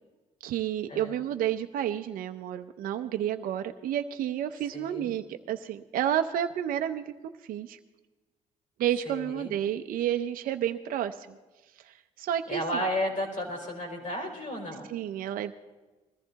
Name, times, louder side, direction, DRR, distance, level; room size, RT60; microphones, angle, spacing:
voice 1, 0.4-7.8 8.8-11.4 11.8-12.8 14.9-15.5, right 10 dB, 80° right, 7 dB, 0.6 m, -31 dB
voice 2, 4.7-5.1 9.0-9.5 12.5-14.9, equal, 65° left, 2 dB, 4.4 m, -33 dB
20.5 x 14.5 x 4.0 m, 1.2 s
cardioid pair, 90°, 14 cm